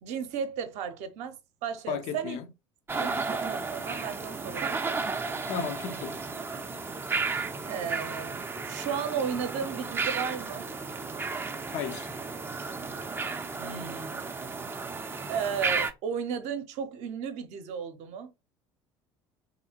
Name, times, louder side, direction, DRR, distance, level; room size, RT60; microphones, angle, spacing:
voice 1, 0.0-2.4 2.9-5.1 7.6-8.4 8.7-10.7 13.6-14.3 15.3-18.3, right 7 dB, 50° right, 0.7 m, -34 dB
voice 2, 1.9-2.4 3.0-3.2 5.5-6.1 11.7-12.1, left 7 dB, 50° left, 0.6 m, -34 dB
sound 1, 2.9-15.9, right 4 dB, 15° right, 0.5 m, -33 dB
3.4 x 2.7 x 2.8 m
figure-of-eight pair, 60°, 15 cm